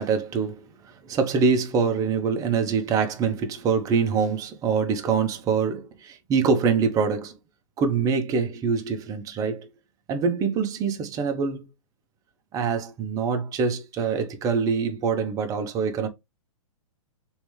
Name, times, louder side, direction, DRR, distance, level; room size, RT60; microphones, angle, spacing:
voice 1, 0.0-7.4 7.8-9.7 10.1-11.7 12.5-16.1, right 5 dB, 20° right, 0.6 m, -25 dB
3.1 x 3.1 x 3.1 m
hypercardioid pair, 135°, 18 cm